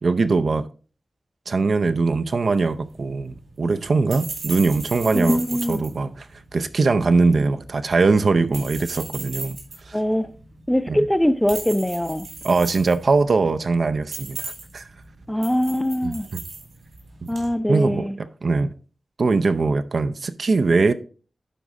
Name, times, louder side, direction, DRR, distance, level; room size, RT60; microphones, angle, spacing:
voice 1, 0.0-0.7 1.5-5.4 5.7-6.3 6.5-9.6 9.9-10.0 10.9-11.0 12.4-14.9 16.0-16.4 17.7-18.1 18.4-18.7 19.2-20.9, right 3 dB, 65° right, 0.5 m, -21 dB
sound 1, 2.4-17.5, right 3 dB, 80° right, 3.5 m, -38 dB
voice 2, 5.1-5.8 9.9-10.3 10.7-12.3 15.3-16.3 17.3-18.2, equal, 5° left, 0.5 m, -22 dB
11.0 x 4.1 x 3.6 m
wide cardioid pair, 100°, 0 cm